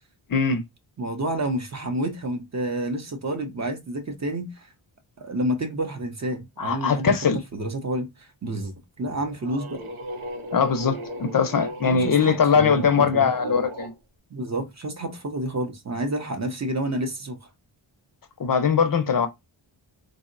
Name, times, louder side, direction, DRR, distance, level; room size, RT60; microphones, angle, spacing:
voice 1, 0.3-0.6 6.6-7.4 10.5-13.9 18.4-19.3, left 6 dB, 45° left, 0.5 m, -21 dB
voice 2, 1.0-4.7 5.2-7.1 7.5-9.8 11.8-13.3 14.3-17.5, right 1 dB, 35° right, 0.5 m, -29 dB
sound 1, 9.0-13.9, right 1 dB, 90° right, 0.7 m, -36 dB
3.6 x 2.0 x 2.4 m
wide cardioid pair, 120°, 48 cm